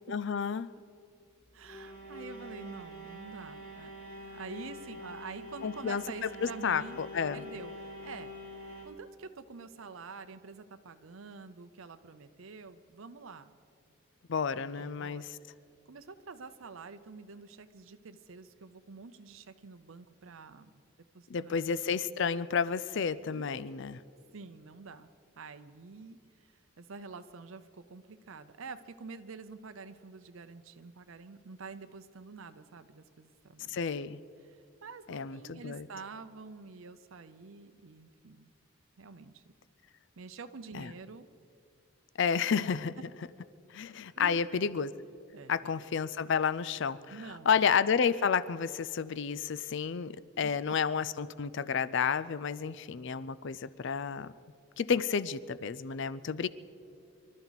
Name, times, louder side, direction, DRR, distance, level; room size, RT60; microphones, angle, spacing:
voice 1, 0.1-0.7 5.6-7.4 14.3-15.3 21.3-24.0 33.7-34.2 35.1-35.9 40.7-40.9 42.2-42.9 43.7-44.9 45.5-54.3 54.8-56.5, left 6 dB, 60° left, 16 dB, 0.5 m, -31 dB
sound 1, 1.2-8.9, equal, 40° left, 3.3 m, -46 dB
voice 2, 1.5-7.0 7.3-8.3 8.8-13.6 14.5-15.3 15.9-20.8 21.1-21.7 23.3-23.4 24.3-25.1 25.4-33.8 34.4-38.5 39.0-39.4 40.2-41.3 44.1-44.7 45.3-45.8 47.1-47.5, right 4 dB, 70° right, 10 dB, 0.6 m, -47 dB
24.5 x 13.0 x 4.1 m, 2.4 s
head